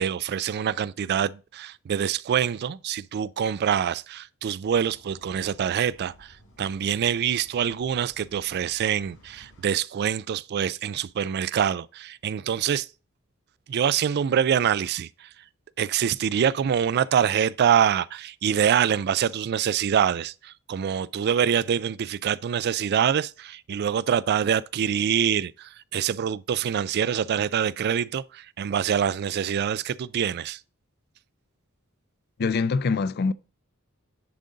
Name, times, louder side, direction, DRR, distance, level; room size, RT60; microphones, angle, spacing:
voice 1, 0.0-12.9 13.7-15.3 15.8-30.6, right 8 dB, 50° right, 0.3 m, -25 dB
sound 1, 4.6-9.7, left 1 dB, 85° left, 3.3 m, -55 dB
voice 2, 32.4-33.3, left 4 dB, 50° left, 0.4 m, -24 dB
10.5 x 3.8 x 3.8 m
head